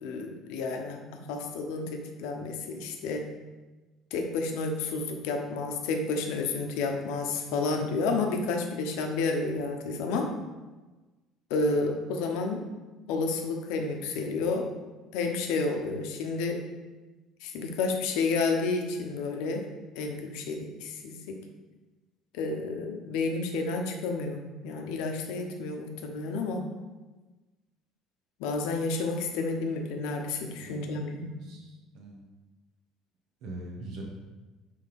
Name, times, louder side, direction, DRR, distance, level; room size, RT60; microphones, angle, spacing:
voice 1, 0.0-1.0 1.3-3.2 4.1-10.3 11.5-12.7 13.1-14.6 15.1-16.6 17.4-19.7 19.9-21.4 22.3-26.6 28.4-31.3, left 3 dB, 85° left, 3 dB, 1.0 m, -30 dB
voice 2, 30.5-32.2 33.4-34.0, right 2 dB, 65° right, -1 dB, 1.3 m, -43 dB
7.4 x 3.6 x 5.3 m, 1.2 s
cardioid pair, 150°, 0 cm